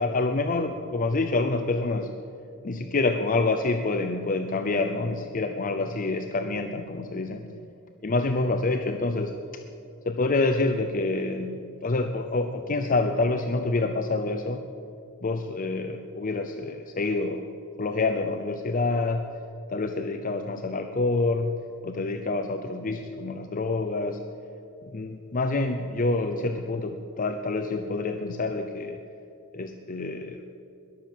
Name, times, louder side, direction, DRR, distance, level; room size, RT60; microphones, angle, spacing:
voice 1, 0.0-2.1 2.6-7.5 8.0-9.3 10.1-14.7 15.2-17.5 17.8-19.3 19.7-24.2 24.8-29.0 29.5-30.4, left 3 dB, 40° left, 6 dB, 0.6 m, -27 dB
21.0 x 7.1 x 7.5 m, 2.7 s
head